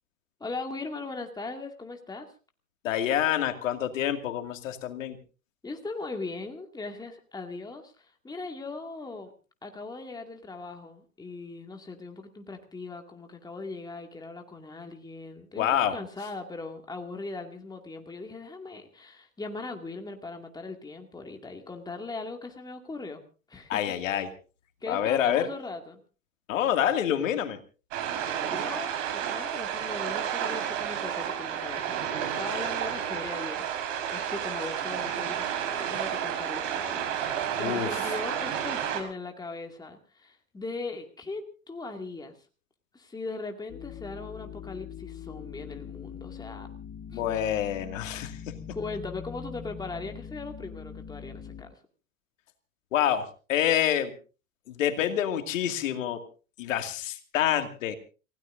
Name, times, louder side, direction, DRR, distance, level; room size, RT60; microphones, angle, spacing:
voice 1, 0.4-2.3 5.6-9.3 9.6-23.2 23.5-24.0 24.8-26.0 28.2-42.4 42.9-46.7 47.1-47.3 48.7-51.8, left 3 dB, 10° left, 4 dB, 2.2 m, -39 dB
voice 2, 2.8-5.2 15.6-15.9 23.7-24.3 24.9-25.5 26.5-27.6 37.6-38.0 47.1-48.4 52.9-54.1 54.7-56.2 56.6-58.0, left 10 dB, 65° left, 7 dB, 2.4 m, -27 dB
sound 1, 27.9-39.0, right 9 dB, 60° right, 4.7 m, -31 dB
sound 2, 43.7-51.6, left 8 dB, 25° left, 1.7 m, -42 dB
29.5 x 16.5 x 2.6 m, 0.35 s
hypercardioid pair, 95°, 41 cm